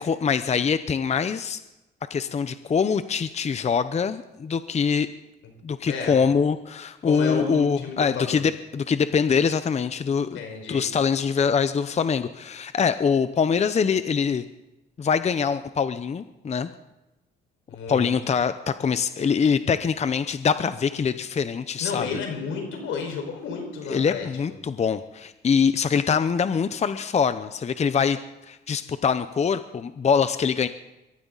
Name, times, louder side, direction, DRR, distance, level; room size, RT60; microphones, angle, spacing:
voice 1, 0.0-1.6 2.1-5.1 5.6-10.4 10.7-14.4 15.0-16.7 17.9-22.1 23.9-28.2 28.4-30.7, left 6 dB, 35° left, 12 dB, 0.7 m, -24 dB
voice 2, 5.8-6.1 7.0-8.4 10.3-10.8 17.7-18.1 21.8-24.3, left 5 dB, 85° left, 3 dB, 4.8 m, -32 dB
23.0 x 14.0 x 4.0 m, 0.99 s
cardioid pair, 90°, 20 cm